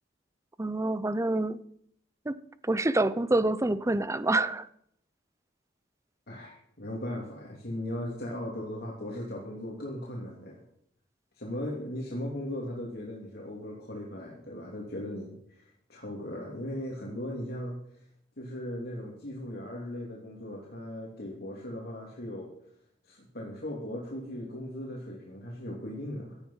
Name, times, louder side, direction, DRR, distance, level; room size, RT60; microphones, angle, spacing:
voice 1, 0.6-1.6 2.3-2.4 2.6-4.7, right 2 dB, 15° right, 0.6 m, -27 dB
voice 2, 6.3-10.6 11.4-17.8 18.4-22.5 23.0-26.4, left 1 dB, 60° left, 2.9 m, -38 dB
16.5 x 11.0 x 5.6 m
head